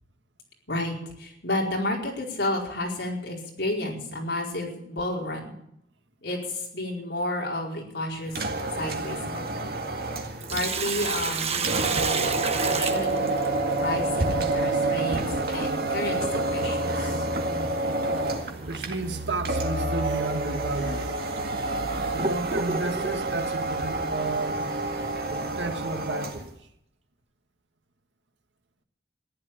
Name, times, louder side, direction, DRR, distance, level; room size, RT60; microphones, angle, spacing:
voice 1, 0.7-5.6 6.2-8.4 8.8-9.7 10.5-13.3 13.8-15.2 15.5-17.3, left 1 dB, 70° left, 4.7 m, -31 dB
sound 1, 8.3-26.5, right 2 dB, 55° right, 2.0 m, -28 dB
Sink (filling or washing), 10.4-13.8 16.2-16.3 18.2-18.4 18.9-19.0 19.8-19.9 20.6-20.7 21.4-23.3, right 5 dB, 35° right, 1.3 m, -30 dB
voice 2, 18.6-21.2 22.1-24.7 25.3-26.5, right 3 dB, 85° right, 1.8 m, -32 dB
14.5 x 11.5 x 8.6 m
head